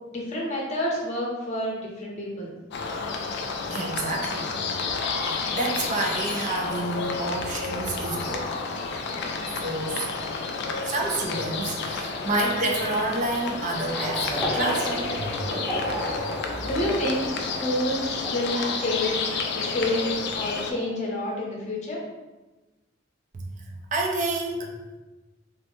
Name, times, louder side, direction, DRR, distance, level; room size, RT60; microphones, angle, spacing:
voice 1, 0.1-2.6 16.6-19.2 19.5-20.1 20.4-22.0, left 1 dB, 35° left, -3 dB, 0.7 m, -28 dB
sound 1, 2.7-20.7, left 4 dB, 55° left, 0.3 m, -31 dB
voice 2, 3.7-4.5 5.2-8.5 9.6-10.0 10.8-15.3 23.3-23.6 23.9-24.7, right 2 dB, 40° right, 0 dB, 0.4 m, -29 dB
sound 2, 13.9-20.4 20.6-21.0, equal, 20° right, 0.8 m, -34 dB
3.2 x 2.0 x 3.0 m, 1.1 s
head